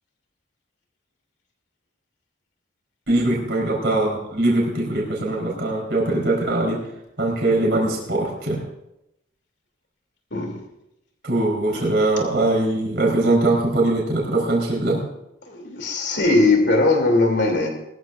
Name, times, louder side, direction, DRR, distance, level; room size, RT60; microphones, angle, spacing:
voice 1, 3.1-6.8 7.2-8.6 11.2-15.0, right 2 dB, 60° right, -3 dB, 4.2 m, -21 dB
voice 2, 15.5-17.7, left 2 dB, 60° left, 3 dB, 3.0 m, -19 dB
21.0 x 13.5 x 2.6 m, 0.86 s
head